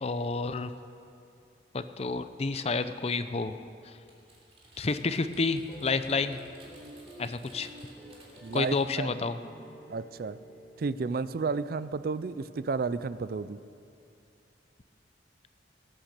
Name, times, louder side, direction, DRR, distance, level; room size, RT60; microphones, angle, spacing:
voice 1, 0.0-0.7 1.7-3.6 3.8-4.0 4.8-6.4 7.2-7.7 8.5-9.4, left 3 dB, 35° left, 11 dB, 0.5 m, -30 dB
Typing, 4.1-9.0, right 1 dB, 35° right, 3.1 m, -56 dB
sound 1, 5.7-12.2, equal, 5° left, 2.4 m, -50 dB
voice 2, 8.4-9.1 9.9-10.4 10.8-13.6, right 4 dB, 55° right, 15 dB, 0.4 m, -32 dB
18.0 x 9.0 x 6.6 m, 2.5 s
head